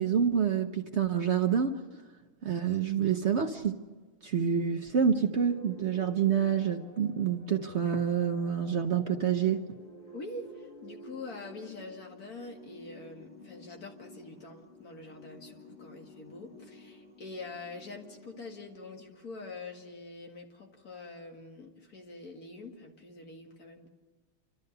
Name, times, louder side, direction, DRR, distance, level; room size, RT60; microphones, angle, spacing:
voice 1, 0.0-1.8 2.4-3.8 4.2-9.7, right 7 dB, 65° right, 5 dB, 0.6 m, -27 dB
sound 1, 5.4-19.1, left 1 dB, 20° left, 4.5 m, -52 dB
voice 2, 10.1-23.9, left 3 dB, 45° left, 2 dB, 2.4 m, -45 dB
29.5 x 13.0 x 6.7 m, 1.3 s
omnidirectional pair, 2.3 m